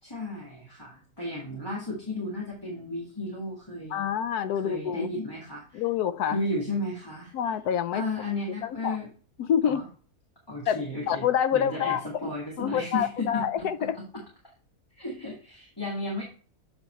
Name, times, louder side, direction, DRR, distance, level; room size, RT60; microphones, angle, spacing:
voice 1, 0.0-4.1 4.6-5.8 6.3-7.3 7.9-9.1 9.6-9.8 10.5-11.3 11.5-13.7 13.9-14.0 15.0-16.2, left 2 dB, 15° left, 1.9 m, -34 dB
voice 2, 3.9-5.1 5.7-6.4 7.3-8.0 8.6-9.0 9.4-9.8 10.7-10.8 11.1-12.2 12.6-14.0, left 9 dB, 85° left, 1.2 m, -27 dB
7.8 x 6.3 x 3.1 m
omnidirectional pair, 1.6 m